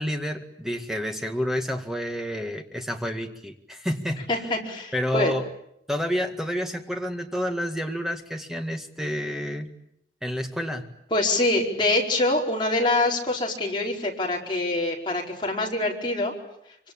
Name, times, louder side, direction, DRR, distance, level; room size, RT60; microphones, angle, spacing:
voice 1, 0.0-4.3 4.9-5.5 5.9-9.7 10.2-10.9, equal, ahead, 4 dB, 1.9 m, -29 dB
voice 2, 4.3-5.3 11.1-16.3, left 2 dB, 25° left, -1 dB, 4.9 m, -25 dB
25.5 x 25.5 x 8.7 m, 0.76 s
head